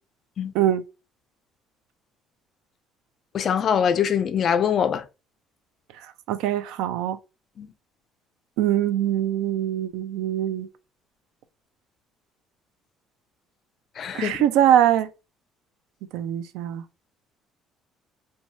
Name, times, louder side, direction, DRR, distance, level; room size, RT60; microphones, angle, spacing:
voice 1, 3.3-5.0 7.6-7.7 14.0-14.4, left 8 dB, 35° left, 0.3 m, -23 dB
voice 2, 6.3-7.2 8.6-10.7 14.1-15.1 16.1-16.8, right 11 dB, 85° right, 0.4 m, -22 dB
2.7 x 2.2 x 3.0 m
cardioid pair, 165°, 0 cm